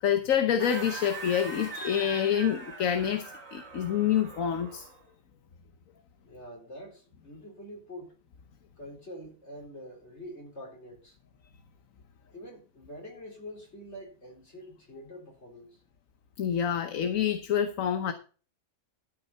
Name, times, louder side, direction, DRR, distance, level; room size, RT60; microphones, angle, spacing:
voice 1, 0.0-4.9 16.4-18.1, left 9 dB, 70° left, 1.3 m, -27 dB
sound 1, 0.6-5.0, right 4 dB, 65° right, 3.4 m, -42 dB
voice 2, 6.2-8.2 8.8-11.2 12.3-15.8, equal, 50° left, 4.1 m, -45 dB
13.0 x 5.6 x 5.6 m
omnidirectional pair, 1.5 m